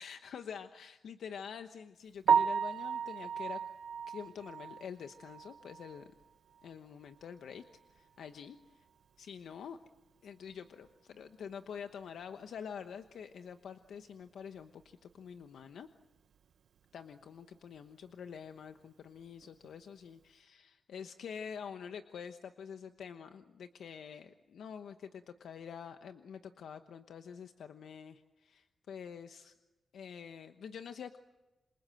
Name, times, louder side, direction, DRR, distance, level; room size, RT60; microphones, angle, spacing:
voice 1, 0.0-3.6 4.1-6.1 6.6-7.6 7.9-8.6 9.2-9.8 10.2-15.9 16.9-29.5 29.9-31.2, left 7 dB, 85° left, 8 dB, 1.0 m, -47 dB
Piano, 2.3-6.2 6.6-6.7 7.2-7.3 7.7-7.8 10.8-10.9 19.4-19.7, right 7 dB, 75° right, 0.9 m, -33 dB
28.0 x 27.0 x 7.7 m, 1.1 s
wide cardioid pair, 165°, 0 cm